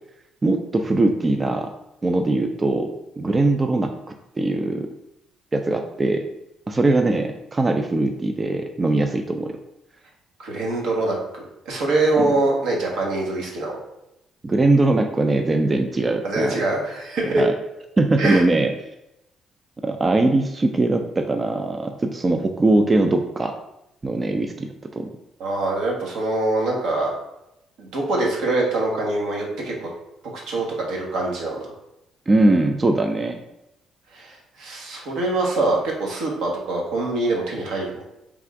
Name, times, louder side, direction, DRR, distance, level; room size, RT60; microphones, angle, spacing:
voice 1, 0.4-1.7 2.0-3.9 4.4-4.9 5.5-6.3 6.7-9.5 12.2-12.3 14.4-16.6 17.2-17.5 18.0-18.7 19.8-23.5 24.0-25.1 32.3-33.4, right 2 dB, 30° right, 5 dB, 0.4 m, -21 dB
voice 2, 10.4-13.8 16.2-17.4 18.2-18.4 25.4-27.1 27.8-29.9 30.5-31.6 34.1-38.0, right 2 dB, 80° right, -2 dB, 1.2 m, -24 dB
3.5 x 2.5 x 4.5 m, 0.88 s
cardioid pair, 80°, 0 cm